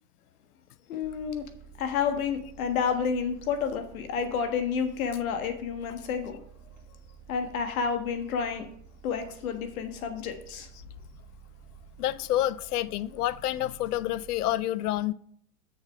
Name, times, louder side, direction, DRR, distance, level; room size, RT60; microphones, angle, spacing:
voice 1, 0.9-1.5 1.8-6.4 7.3-8.7 9.0-10.7, left 6 dB, 65° left, 1.5 m, -30 dB
sound 1, 1.0-14.5, right 7 dB, 25° right, 1.5 m, -52 dB
voice 2, 12.0-15.1, left 14 dB, 80° left, 0.6 m, -28 dB
6.8 x 6.5 x 4.7 m
hypercardioid pair, 140°, 45 cm